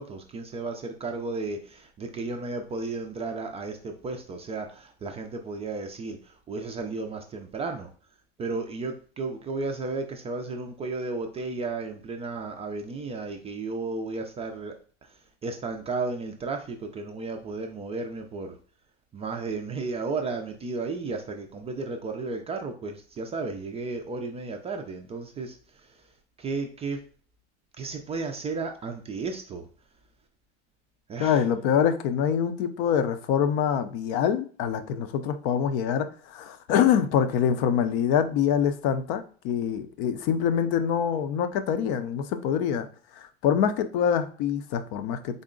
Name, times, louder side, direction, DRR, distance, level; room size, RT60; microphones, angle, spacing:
voice 1, 0.0-7.9 8.4-18.6 19.1-26.1 26.4-27.0 27.8-29.7 31.1-31.4, right 3 dB, 20° right, 4 dB, 0.3 m, -34 dB
voice 2, 31.2-42.9 43.1-45.4, left 8 dB, 60° left, 11 dB, 0.5 m, -25 dB
3.8 x 2.1 x 3.7 m, 0.42 s
supercardioid pair, 115°, 34 cm